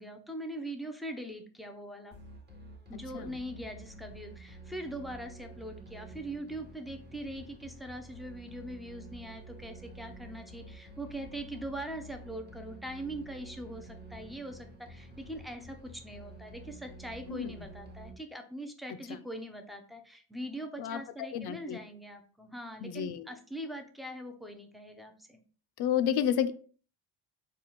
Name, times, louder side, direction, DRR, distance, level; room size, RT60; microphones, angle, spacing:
voice 1, 0.0-2.2 2.9-25.4, right 1 dB, ahead, 5 dB, 0.4 m, -42 dB
sound 1, 2.1-18.1, right 2 dB, 20° right, 0.9 m, -49 dB
voice 2, 21.3-21.8 22.8-23.3 25.8-26.5, left 9 dB, 60° left, 12 dB, 0.5 m, -30 dB
4.2 x 2.3 x 2.9 m, 0.42 s
cardioid pair, 95°, 46 cm